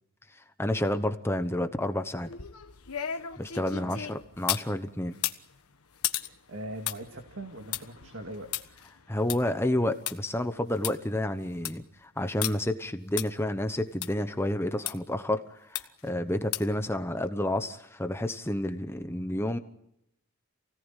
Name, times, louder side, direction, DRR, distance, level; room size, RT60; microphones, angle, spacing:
voice 1, 0.3-2.3 3.4-5.2 9.1-19.6, left 1 dB, 10° left, 8 dB, 1.0 m, -30 dB
sound 1, 2.2-4.7 5.1-10.1 10.5-10.6 10.8-10.9 11.4-11.8 12.4-12.5 13.2-13.3 14.0-14.1 14.8-14.9 15.7-16.1 16.5-16.8 17.2-17.3, left 11 dB, 75° left, 1.4 m, -35 dB
voice 2, 3.7-4.0 6.2-8.6, right 1 dB, 60° right, 4 dB, 2.2 m, -41 dB
28.5 x 18.0 x 9.1 m, 0.80 s
head